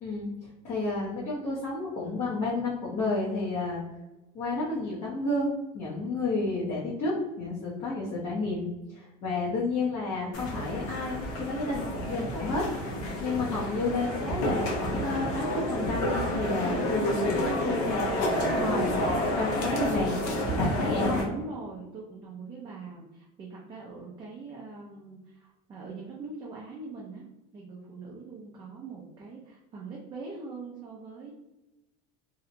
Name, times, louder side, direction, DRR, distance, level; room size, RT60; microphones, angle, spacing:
voice 1, 0.6-3.8 4.3-12.7 13.2-18.9 19.3-20.2 20.6-21.2, left 3 dB, 40° left, -7 dB, 0.7 m, -31 dB
sound 1, 10.3-21.2, left 1 dB, 75° left, 0.8 m, -29 dB
voice 2, 21.2-27.3 27.5-31.3, right 4 dB, 25° right, -3 dB, 0.4 m, -42 dB
2.7 x 2.0 x 2.6 m, 1.0 s
cardioid pair, 140°, 18 cm